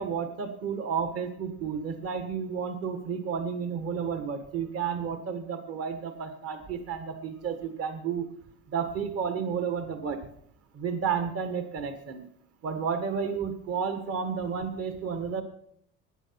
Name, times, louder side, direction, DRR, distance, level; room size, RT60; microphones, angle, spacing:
voice 1, 0.0-8.3 8.7-10.3 10.7-12.3 12.6-15.4, right 6 dB, 50° right, 8 dB, 1.6 m, -31 dB
14.5 x 9.7 x 5.8 m, 0.68 s
cardioid pair, 135°, 30 cm